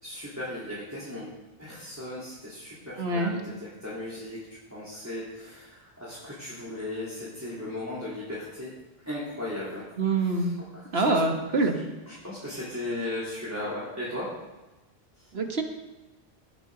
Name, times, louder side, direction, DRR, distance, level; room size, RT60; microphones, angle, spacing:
voice 1, 0.0-1.3 1.6-4.4 4.7-8.7 9.1-11.2 11.7-14.3 15.2-15.3, left 1 dB, 15° right, -9 dB, 3.7 m, -37 dB
voice 2, 3.0-3.4 10.0-10.5 10.9-11.8 15.3-15.6, right 3 dB, 70° right, 4 dB, 1.8 m, -25 dB
19.0 x 11.0 x 4.0 m, 1.1 s
omnidirectional pair, 1.1 m